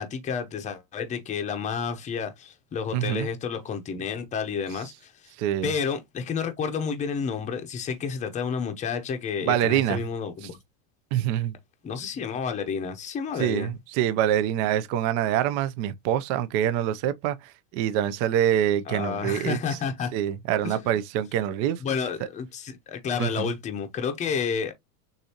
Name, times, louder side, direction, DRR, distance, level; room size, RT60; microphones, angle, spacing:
voice 1, 0.0-5.3 5.6-10.6 11.8-13.7 18.9-20.1 20.6-20.9 21.8-24.7, left 6 dB, 15° left, 0.7 m, -30 dB
voice 2, 2.9-3.3 5.4-5.7 9.4-10.1 10.4-10.5 11.1-11.5 13.4-19.8 20.1-21.8 23.2-23.5, right 11 dB, 45° right, 0.6 m, -25 dB
6.7 x 2.6 x 2.8 m
supercardioid pair, 150°, 43 cm